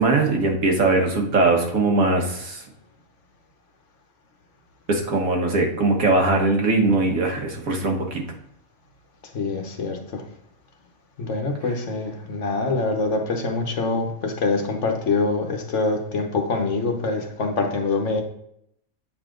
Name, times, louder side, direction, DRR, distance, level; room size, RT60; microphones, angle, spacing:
voice 1, 0.0-2.6 4.9-8.2, right 3 dB, 80° right, 2 dB, 1.8 m, -20 dB
voice 2, 9.3-10.2 11.2-18.2, left 3 dB, 60° left, 3 dB, 1.3 m, -25 dB
8.0 x 5.0 x 3.8 m, 0.74 s
omnidirectional pair, 1.4 m